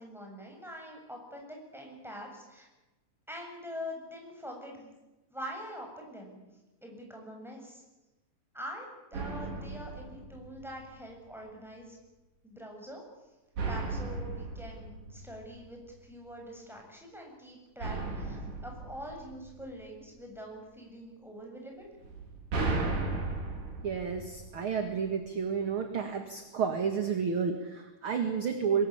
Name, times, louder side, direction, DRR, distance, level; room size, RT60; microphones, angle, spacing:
voice 1, 0.0-2.7 3.3-4.9 5.3-6.4 6.8-7.8 8.5-12.0 12.4-13.0 13.7-21.9, equal, ahead, 0 dB, 7.4 m, -44 dB
sound 1, 9.1-11.0 13.6-16.0 17.8-20.1 22.0-25.1, right 3 dB, 85° right, 6.0 m, -36 dB
voice 2, 23.8-28.9, right 6 dB, 45° right, 6 dB, 2.4 m, -31 dB
23.5 x 21.5 x 8.7 m, 1.0 s
omnidirectional pair, 3.7 m